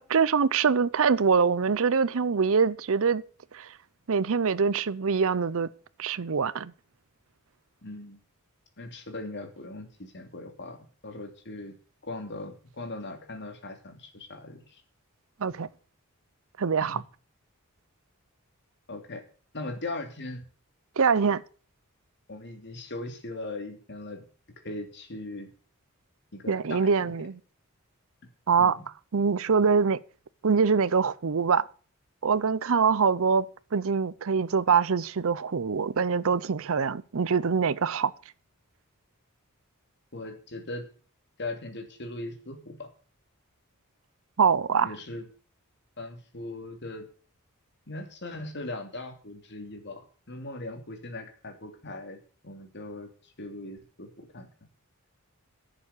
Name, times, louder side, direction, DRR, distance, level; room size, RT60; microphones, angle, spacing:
voice 1, 0.0-3.2 3.5-3.7 4.1-5.7 6.0-6.7 15.4-15.7 16.6-17.0 21.0-21.4 26.5-27.4 28.5-28.8 29.1-30.0 30.4-31.6 32.2-33.5 33.7-38.1 44.4-44.9, right 5 dB, 65° right, 0.6 m, -24 dB
voice 2, 7.8-8.2 8.8-11.7 12.0-14.8 16.8-17.0 18.9-19.2 19.5-20.4 22.3-24.2 24.6-25.5 26.3-27.3 28.6-28.8 40.1-40.9 41.4-42.9 44.8-45.3 46.0-47.1 47.9-50.0 50.3-53.1 53.4-54.5, left 2 dB, 50° left, 2.9 m, -39 dB
11.0 x 7.3 x 8.3 m
head